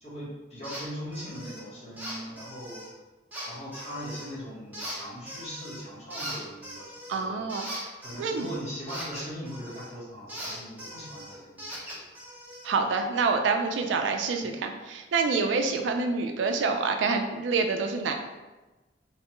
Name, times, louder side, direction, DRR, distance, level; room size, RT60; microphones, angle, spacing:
voice 1, 0.0-2.8 3.4-7.5 8.0-12.0 12.9-13.0 14.4-14.5 15.6-15.7, equal, 40° left, -8 dB, 1.1 m, -40 dB
sound 1, 0.6-0.8 1.1-1.6 2.0-2.9 3.3-4.3 4.7-5.8 6.1-9.9 10.3-12.7, equal, 10° right, 0.7 m, -40 dB
voice 2, 7.1-7.9 8.2-8.5 12.6-18.1, right 4 dB, 85° right, 5 dB, 0.3 m, -27 dB
3.2 x 2.2 x 2.9 m, 1.1 s
head